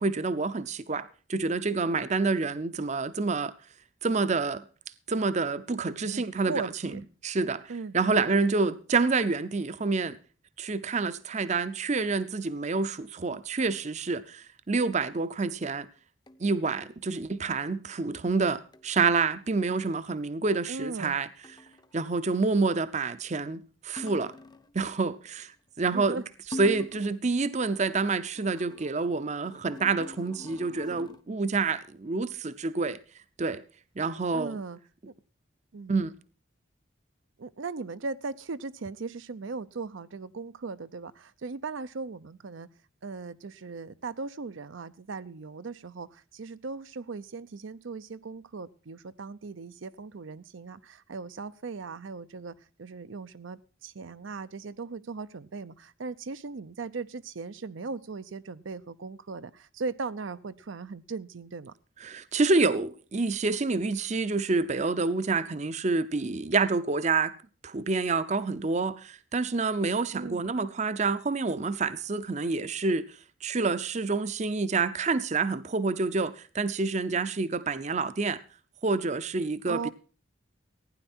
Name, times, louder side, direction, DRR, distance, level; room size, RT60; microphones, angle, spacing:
voice 1, 0.0-3.5 4.0-4.7 5.1-6.7 7.2-10.2 10.6-15.9 16.4-21.3 21.9-24.3 24.7-26.2 26.6-33.0 33.4-33.6 34.0-34.6 35.9-36.1 62.0-67.3 67.6-78.4 78.8-79.9, right 4 dB, 35° right, 0.6 m, -28 dB
voice 2, 6.0-7.0 7.7-7.9 20.7-21.2 25.8-26.2 34.3-34.8 35.7-36.0 37.4-42.7 43.0-61.7 70.1-70.4 79.7-79.9, right 4 dB, 75° right, 0.6 m, -38 dB
sound 1, 15.0-15.2 16.3-16.6 18.7-19.2 21.4-22.0 24.0-24.8 26.5-27.2 27.5-31.2, left 1 dB, 20° left, 0.6 m, -45 dB
15.5 x 10.0 x 4.3 m
head